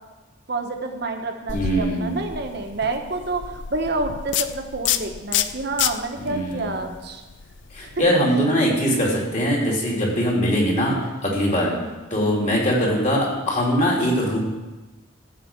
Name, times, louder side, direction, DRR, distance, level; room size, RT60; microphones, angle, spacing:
voice 1, 0.5-7.2 7.8-8.0 9.0-9.2 11.6-12.6, right 2 dB, 55° right, 4 dB, 1.2 m, -29 dB
sound 1, 1.5-8.1, left 9 dB, 65° left, 0.5 m, -29 dB
voice 2, 1.5-2.2 6.2-6.7 7.7-11.0 11.2-11.7 12.1-14.4, equal, 35° left, -3 dB, 2.8 m, -21 dB
14.0 x 5.1 x 7.2 m, 1.1 s
head